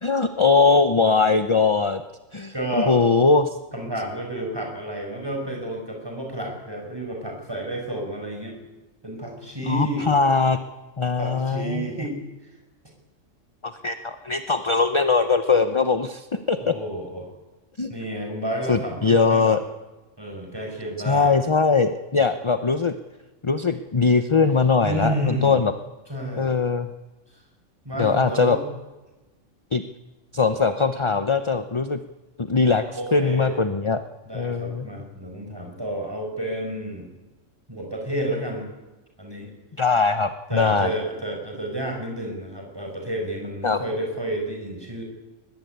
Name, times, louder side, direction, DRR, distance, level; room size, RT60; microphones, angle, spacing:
voice 1, 0.0-2.0 2.3-3.6 9.6-10.6 11.0-11.8 13.6-16.8 17.8-17.9 18.7-19.6 21.1-22.9 23.4-25.7 26.4-26.9 28.0-28.6 29.7-29.8 30.3-32.0 32.4-32.8 33.1-34.0 34.3-34.9 39.8-40.9 43.6-43.8, left 4 dB, 25° left, 10 dB, 0.8 m, -21 dB
voice 2, 2.5-3.0 3.7-8.6 9.0-10.1 11.1-12.5 16.6-17.3 17.9-19.6 20.2-21.3 22.2-22.3 24.8-25.6 26.1-26.6 27.8-28.6 32.9-33.6 34.3-37.1 37.7-38.7 39.2-39.5 40.5-45.0, right 1 dB, 20° right, 1 dB, 6.0 m, -30 dB
22.0 x 20.0 x 9.3 m, 1.1 s
omnidirectional pair, 1.3 m